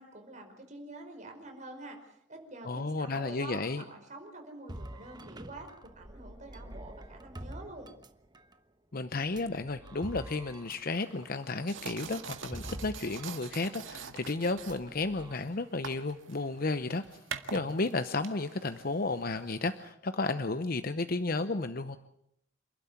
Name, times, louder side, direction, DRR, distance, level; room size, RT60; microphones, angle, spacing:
voice 1, 0.0-7.9, right 2 dB, 40° right, 4 dB, 5.1 m, -47 dB
voice 2, 2.7-3.8 8.9-17.0 17.5-22.0, left 3 dB, 50° left, 11 dB, 0.8 m, -33 dB
sound 1, 4.7-8.6 9.2-13.4 13.7-13.9 14.5-15.4, right 1 dB, 20° right, 1.2 m, -46 dB
sound 2, 10.7-19.9, right 6 dB, 90° right, 1.9 m, -46 dB
28.0 x 12.5 x 9.6 m, 0.75 s
head